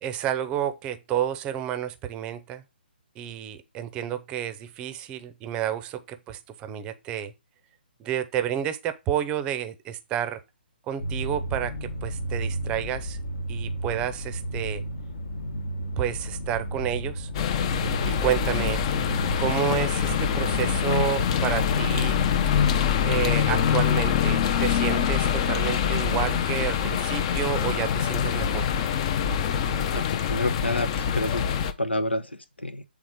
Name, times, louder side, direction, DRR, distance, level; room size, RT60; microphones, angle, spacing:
voice 1, 0.0-2.6 3.2-7.3 8.0-10.4 10.9-13.2 13.5-14.8 16.0-17.3 18.0-18.8 19.4-22.2 23.0-28.7, right 10 dB, 20° right, 0.6 m, -30 dB
sound 1, 11.0-26.5, equal, 55° left, 1.2 m, -33 dB
sound 2, 17.3-31.7, left 8 dB, 35° left, 0.6 m, -25 dB
voice 2, 29.9-31.5 31.8-32.8, left 1 dB, 85° left, 1.0 m, -29 dB
7.8 x 3.5 x 4.9 m
figure-of-eight pair, 135°, 6 cm